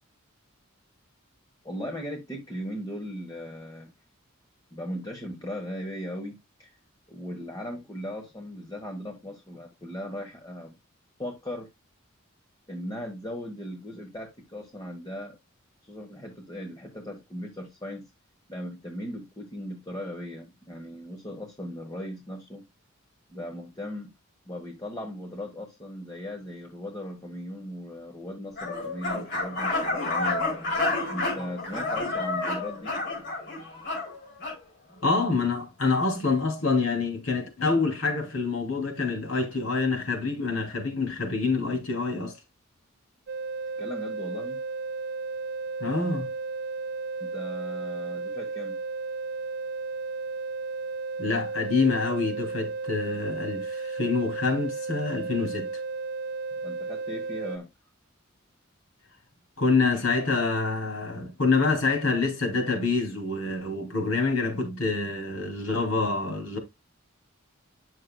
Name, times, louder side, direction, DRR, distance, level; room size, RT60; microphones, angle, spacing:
voice 1, 1.6-3.9 4.7-6.8 7.1-10.7 11.2-11.7 12.7-15.4 15.8-18.1 18.5-22.6 23.3-24.1 24.5-30.5 31.1-32.9 43.8-44.6 47.2-48.8 56.6-57.7, equal, 20° left, 1.3 m, -38 dB
sound 1, 28.6-34.6, left 2 dB, 55° left, 3.7 m, -30 dB
voice 2, 35.0-42.3 45.8-46.3 51.2-55.7 59.6-66.6, left 4 dB, 85° left, 2.7 m, -26 dB
sound 2, 43.3-57.6, right 3 dB, 50° right, 0.4 m, -34 dB
9.6 x 6.4 x 2.2 m
head